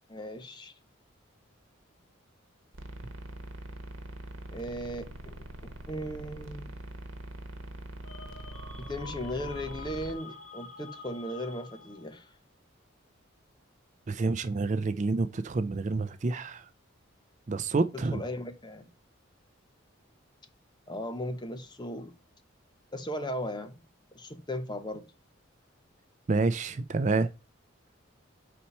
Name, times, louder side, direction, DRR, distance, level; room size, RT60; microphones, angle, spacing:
voice 1, 0.1-0.7 4.5-6.7 8.8-12.3 17.9-18.9 20.9-22.1 22.9-23.8 24.1-25.0, equal, 20° left, 0.8 m, -37 dB
sound 1, 2.7-10.1, right 1 dB, 75° right, 1.1 m, -43 dB
sound 2, 8.0-12.2, left 4 dB, 70° left, 2.1 m, -47 dB
voice 2, 14.1-16.7 17.5-18.2 26.3-27.3, right 3 dB, 35° right, 0.4 m, -28 dB
4.4 x 4.3 x 5.3 m
head